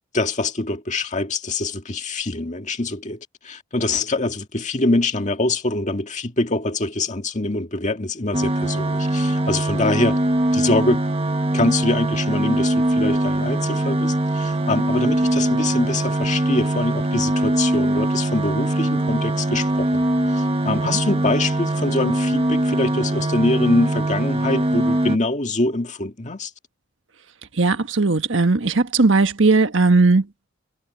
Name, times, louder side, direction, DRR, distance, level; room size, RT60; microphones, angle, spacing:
voice 1, 0.1-10.2 10.5-11.0 11.5-20.0 20.3-26.5, left 2 dB, 40° left, 1.9 m, -24 dB
sound 1, 8.3-25.2, right 1 dB, 30° right, 1.5 m, -22 dB
voice 2, 20.7-21.0 27.6-30.3, right 3 dB, 75° right, 1.4 m, -18 dB
head